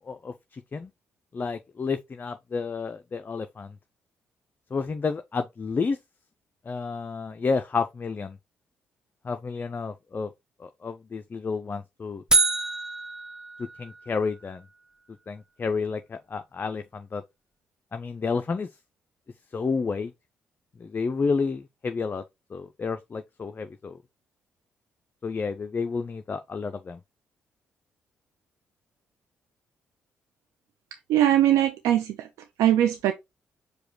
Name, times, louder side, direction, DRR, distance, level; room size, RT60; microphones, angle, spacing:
voice 1, 0.1-0.9 1.3-3.7 4.7-6.0 6.7-8.4 9.2-10.3 10.6-12.2 13.6-14.6 15.3-17.2 17.9-18.7 19.5-20.1 20.8-22.2 22.5-24.0 25.2-27.0, left 4 dB, 35° left, 0.4 m, -30 dB
sound 1, 12.3-14.4, right 3 dB, 15° right, 0.8 m, -26 dB
voice 2, 31.1-32.3 32.6-33.1, right 11 dB, 80° right, 0.4 m, -21 dB
4.8 x 2.2 x 4.5 m
hypercardioid pair, 50°, 5 cm